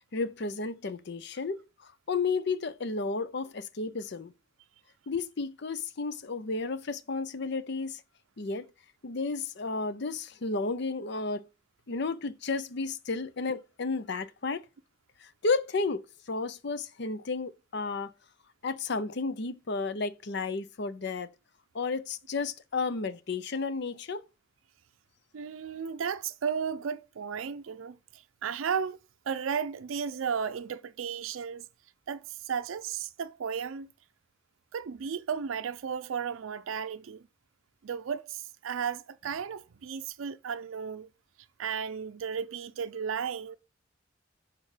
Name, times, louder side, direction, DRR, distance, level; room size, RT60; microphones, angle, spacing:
voice 1, 0.1-1.6 2.1-4.3 5.1-8.0 8.4-8.7 9.0-11.5 11.9-14.6 15.4-18.1 18.6-21.3 21.7-24.2, left 4 dB, 60° left, 0.6 m, -32 dB
voice 2, 25.3-29.0 29.3-31.6 32.1-33.9 34.7-37.2 37.8-41.1 41.6-43.6, right 7 dB, 90° right, 0.4 m, -34 dB
6.5 x 3.6 x 4.9 m
head